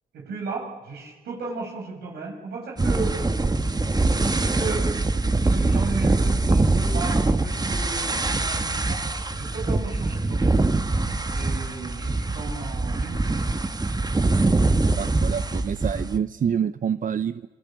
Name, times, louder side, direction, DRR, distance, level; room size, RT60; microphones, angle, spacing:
voice 1, 0.1-3.2 4.3-9.0 9.3-10.5 11.3-13.5, right 4 dB, 80° right, 0 dB, 7.5 m, -35 dB
sound 1, 2.8-16.2, right 2 dB, 25° right, 1.7 m, -23 dB
voice 2, 15.0-17.5, right 8 dB, 55° right, 13 dB, 0.8 m, -27 dB
27.5 x 25.5 x 7.6 m, 1.3 s
supercardioid pair, 50°, 16 cm